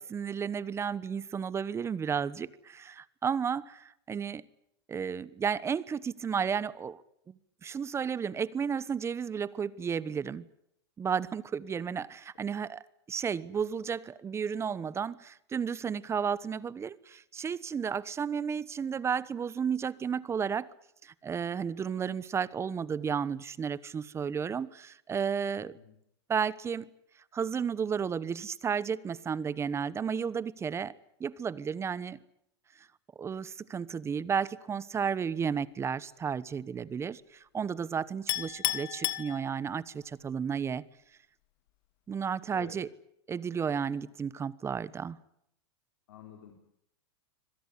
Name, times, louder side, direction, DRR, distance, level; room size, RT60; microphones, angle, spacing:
voice 1, 0.0-4.4 4.9-7.0 7.6-10.5 11.0-12.8 13.1-20.7 21.0-25.7 26.3-26.9 27.3-30.9 31.2-32.2 33.2-40.8 42.1-42.9 43.3-45.2, right 7 dB, 20° right, 1.0 m, -33 dB
voice 2, 25.6-26.0 42.5-42.7 46.1-46.5, left 9 dB, 75° left, 4.2 m, -49 dB
Chink clink, 38.3-40.0, left 18 dB, 60° left, 1.8 m, -33 dB
25.5 x 18.0 x 9.9 m
supercardioid pair, 125°, 14 cm